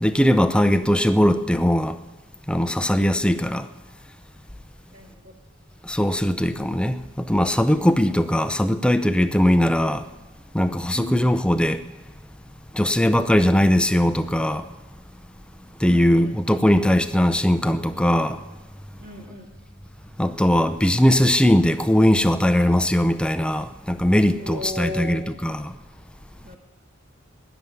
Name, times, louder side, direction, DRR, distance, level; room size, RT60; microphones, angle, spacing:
voice 1, 0.0-2.0 2.5-3.7 5.8-10.1 10.5-11.8 12.7-14.7 15.8-18.4 20.2-25.7, equal, 5° left, 0.6 m, -20 dB
voice 2, 4.9-5.3 10.9-11.2 15.9-16.4 19.0-19.5 24.4-25.2 26.4-26.6, left 1 dB, 45° right, 2.0 m, -35 dB
20.0 x 7.1 x 9.5 m
head